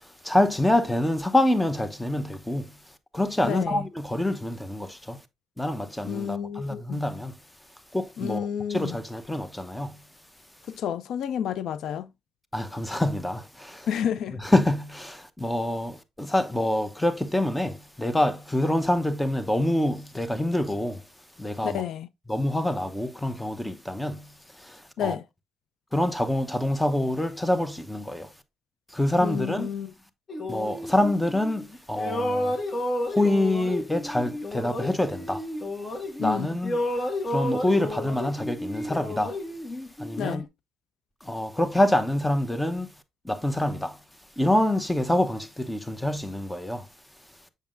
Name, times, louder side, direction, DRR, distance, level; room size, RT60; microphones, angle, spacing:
voice 1, 0.2-2.8 3.1-5.2 5.6-7.4 7.9-10.0 12.5-13.9 14.3-21.0 21.4-21.8 22.3-24.3 24.6-25.1 25.9-28.3 28.9-29.7 30.5-32.6 33.1-35.5 36.2-39.4 40.0-40.4 41.2-42.9 43.2-44.0 44.4-46.9, left 1 dB, 10° left, 0.9 m, -26 dB
voice 2, 3.4-3.8 6.0-7.0 8.2-8.9 10.7-12.1 13.9-14.4 21.6-22.1 25.0-25.2 29.2-29.9 36.2-36.5 40.2-40.4, left 9 dB, 75° left, 0.4 m, -30 dB
sound 1, 30.3-31.6 31.9-36.3 36.6-40.4, left 1 dB, 35° left, 1.8 m, -31 dB
7.1 x 6.5 x 2.5 m
cardioid pair, 90°, 0 cm